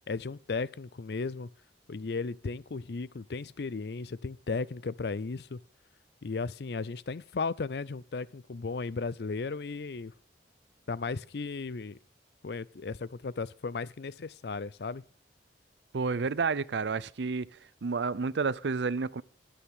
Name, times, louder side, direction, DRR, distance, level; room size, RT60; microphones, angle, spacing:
voice 1, 0.1-1.5 1.9-5.6 6.2-10.1 10.9-12.0 12.4-15.0, left 4 dB, 65° left, 0.5 m, -35 dB
voice 2, 15.9-17.5 17.8-19.2, right 4 dB, 80° right, 0.5 m, -30 dB
21.5 x 8.5 x 3.7 m
head